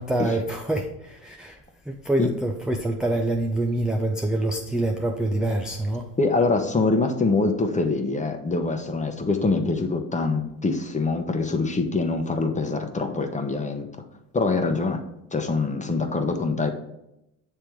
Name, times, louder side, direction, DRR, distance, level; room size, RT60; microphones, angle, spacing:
voice 1, 0.0-1.6 1.9-6.1, right 1 dB, ahead, 0.3 m, -26 dB
voice 2, 6.2-13.9 14.3-15.0 15.3-16.7, left 3 dB, 15° left, 0.8 m, -24 dB
7.5 x 3.3 x 4.5 m
supercardioid pair, 80°, 46 cm